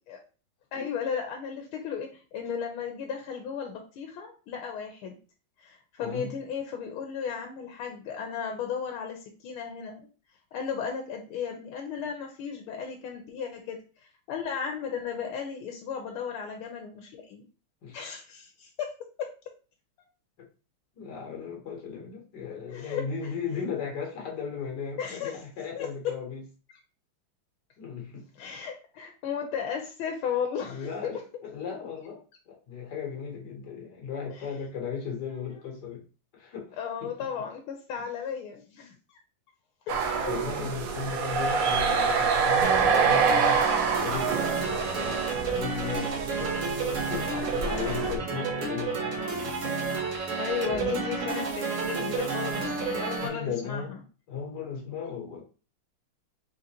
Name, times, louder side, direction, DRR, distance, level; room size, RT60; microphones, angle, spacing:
voice 1, 0.7-5.2 5.6-10.1 10.5-13.8 14.3-17.4 17.9-18.9 19.2-19.3 22.7-23.3 25.0-25.4 25.7-25.9 28.4-31.1 34.4-34.5 36.8-38.9 39.9-40.3 50.4-54.0, left 7 dB, 85° left, 3 dB, 1.5 m, -35 dB
voice 2, 6.0-6.3 17.8-18.0 20.4-20.5 21.0-26.4 27.8-28.2 30.7-36.0 36.3-37.1 40.3-43.6 43.9-46.7 47.1-49.6 50.7-51.0 53.2-54.0 54.3-55.4, left 6 dB, 60° left, 0 dB, 1.6 m, -36 dB
sound 1, 39.9-48.2, right 5 dB, 80° right, 0.7 m, -26 dB
sound 2, 42.6-53.3, right 4 dB, 50° right, 1.0 m, -31 dB
4.0 x 3.8 x 2.8 m, 0.36 s
omnidirectional pair, 2.3 m